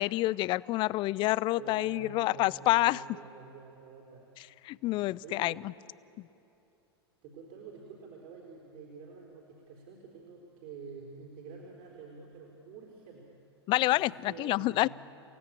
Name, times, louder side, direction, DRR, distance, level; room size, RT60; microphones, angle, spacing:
voice 1, 0.0-3.0 4.6-5.7 13.7-14.9, left 18 dB, 35° left, 22 dB, 0.4 m, -28 dB
voice 2, 1.6-4.3 5.2-5.7 7.2-13.4 13.9-14.9, right 5 dB, 50° right, -1 dB, 4.2 m, -48 dB
29.0 x 17.0 x 8.7 m, 2.8 s
figure-of-eight pair, 95°, 14 cm